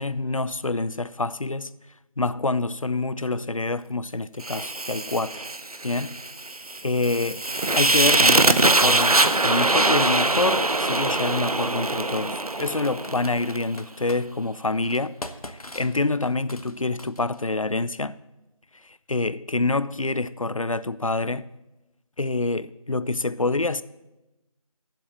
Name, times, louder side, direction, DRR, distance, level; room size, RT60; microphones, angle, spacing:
voice 1, 0.0-1.7 2.2-5.4 5.8-6.2 6.8-7.4 7.7-15.2 15.4-18.2 18.8-21.5 22.2-23.8, left 3 dB, 65° left, 0.5 m, -26 dB
Fire, 4.4-13.6, right 2 dB, 90° right, 0.7 m, -22 dB
Computer keyboard, 11.3-11.6 12.5-14.2 14.8-17.5, left 1 dB, 85° left, 0.9 m, -42 dB
7.7 x 7.4 x 8.4 m
figure-of-eight pair, 180°, 18 cm